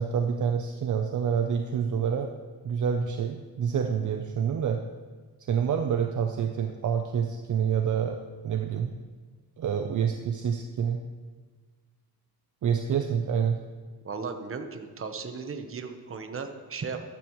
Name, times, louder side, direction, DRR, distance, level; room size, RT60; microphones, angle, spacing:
voice 1, 0.0-2.3 2.6-4.8 5.5-8.2 8.4-9.0 9.6-11.0 12.6-13.6, right 7 dB, 50° right, 5 dB, 0.7 m, -27 dB
voice 2, 14.0-17.0, right 5 dB, 35° right, 6 dB, 1.1 m, -36 dB
15.0 x 12.0 x 3.2 m, 1.4 s
cardioid pair, 130°, 39 cm